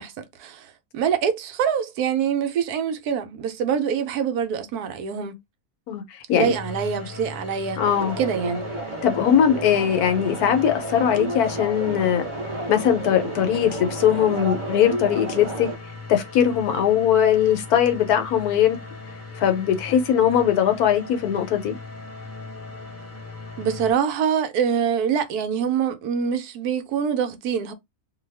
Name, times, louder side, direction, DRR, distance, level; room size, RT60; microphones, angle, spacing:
voice 1, 0.0-5.4 6.3-7.8 8.2-8.7 23.6-27.7, right 7 dB, 75° right, 1.1 m, -25 dB
sound 1, 6.4-23.9, left 3 dB, 15° left, 0.5 m, -39 dB
voice 2, 7.8-8.1 9.0-12.2 12.7-15.7 16.1-18.8 19.4-21.8, left 9 dB, 75° left, 1.1 m, -20 dB
sound 2, 7.8-15.8, right 2 dB, 40° right, 0.4 m, -32 dB
2.7 x 2.3 x 3.2 m
omnidirectional pair, 1.7 m